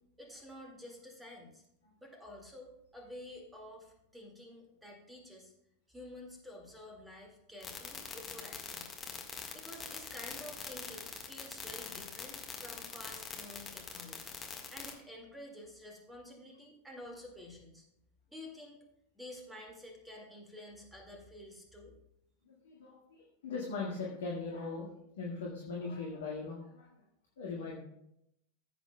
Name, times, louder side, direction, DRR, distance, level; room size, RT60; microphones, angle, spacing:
voice 1, 0.2-1.6 2.0-5.5 5.9-8.9 9.5-14.3 14.7-17.8 18.3-18.8 19.1-21.9, left 1 dB, 5° right, 0 dB, 2.1 m, -50 dB
sound 1, 7.6-14.9, left 5 dB, 20° left, 1.6 m, -43 dB
voice 2, 22.4-26.9 27.4-27.8, left 4 dB, 60° left, -3 dB, 1.7 m, -40 dB
16.5 x 8.0 x 2.3 m, 0.79 s
figure-of-eight pair, 90°, 0 cm